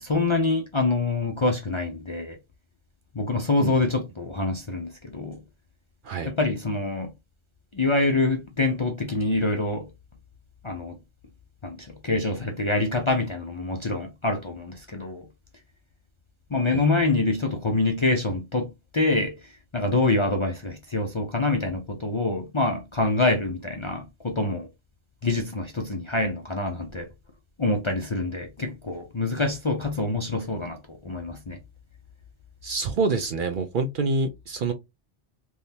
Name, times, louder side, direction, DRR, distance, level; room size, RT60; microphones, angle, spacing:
voice 1, 0.0-2.4 3.1-5.4 6.2-7.1 7.7-9.9 10.6-11.0 11.6-15.2 16.5-18.7 18.9-24.7 25.2-27.1 27.6-31.6, left 2 dB, 35° left, 0.5 m, -26 dB
voice 2, 32.6-34.7, right 3 dB, 60° right, 0.6 m, -26 dB
3.5 x 2.6 x 2.7 m
omnidirectional pair, 1.2 m